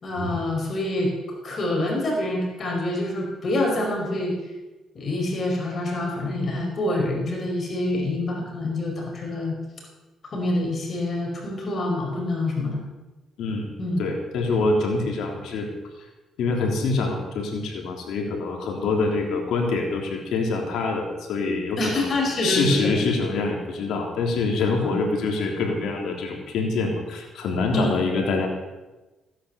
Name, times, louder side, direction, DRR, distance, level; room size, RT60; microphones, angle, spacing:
voice 1, 0.0-1.1 1.4-4.3 4.9-9.5 10.2-12.8 13.8-14.0 21.8-22.9 24.8-24.9 27.7-27.9, left 1 dB, 45° left, 0 dB, 4.9 m, -26 dB
voice 2, 13.4-13.7 14.0-15.7 16.4-22.1 22.4-28.5, left 3 dB, 80° left, 1 dB, 3.3 m, -25 dB
17.0 x 10.0 x 7.1 m, 1.1 s
cardioid pair, 90°, 0 cm